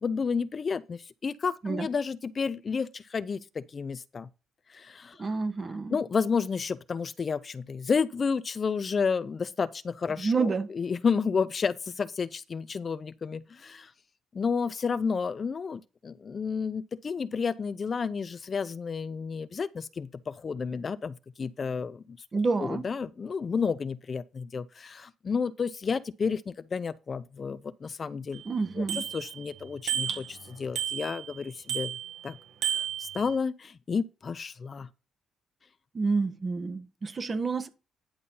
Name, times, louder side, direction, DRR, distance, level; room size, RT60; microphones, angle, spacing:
voice 1, 0.0-4.3 4.7-5.3 5.9-13.9 14.3-22.2 22.6-28.4 28.8-28.9 29.1-32.0 32.2-32.4 32.7-34.9, left 5 dB, 40° left, 0.5 m, -31 dB
voice 2, 5.2-6.0 10.2-10.7 22.3-22.9 28.4-29.1 35.9-37.7, right 4 dB, 35° right, 1.1 m, -29 dB
Bicycle bell, 28.3-28.4 28.9-29.5 29.9-30.4 30.8-31.4 31.7-32.2 32.6-33.3, right 8 dB, 75° right, 1.7 m, -32 dB
10.0 x 4.2 x 5.4 m
cardioid pair, 90°, 0 cm